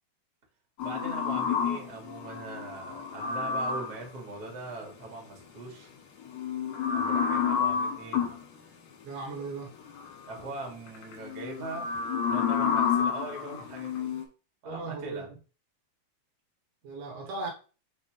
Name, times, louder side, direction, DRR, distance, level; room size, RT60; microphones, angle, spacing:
sound 1, 0.8-4.1 6.2-8.4 9.8-10.4 10.9-14.2, left 7 dB, 85° left, 3.4 m, -30 dB
voice 1, 0.8-5.9 6.9-8.3 10.3-14.1 14.6-15.3, right 3 dB, 35° right, 1.9 m, -41 dB
voice 2, 9.0-9.7 14.7-15.3 16.8-17.5, right 3 dB, 85° right, 3.5 m, -37 dB
7.5 x 4.2 x 3.1 m
omnidirectional pair, 4.6 m